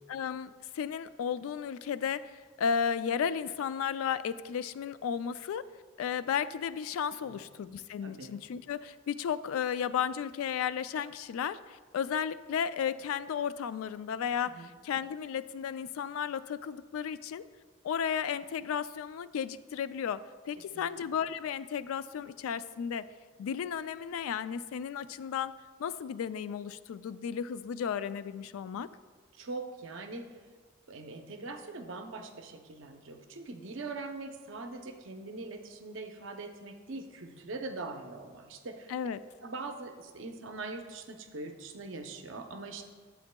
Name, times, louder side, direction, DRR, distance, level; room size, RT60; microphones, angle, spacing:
voice 1, 0.1-5.7 6.0-17.4 17.8-23.1 23.4-25.5 25.8-28.9 38.9-39.2, left 7 dB, 90° left, 14 dB, 0.3 m, -34 dB
voice 2, 20.7-21.1 29.3-30.2 30.9-38.9 39.4-42.8, right 3 dB, 70° right, 5 dB, 0.6 m, -42 dB
11.5 x 7.7 x 2.2 m, 1.5 s
head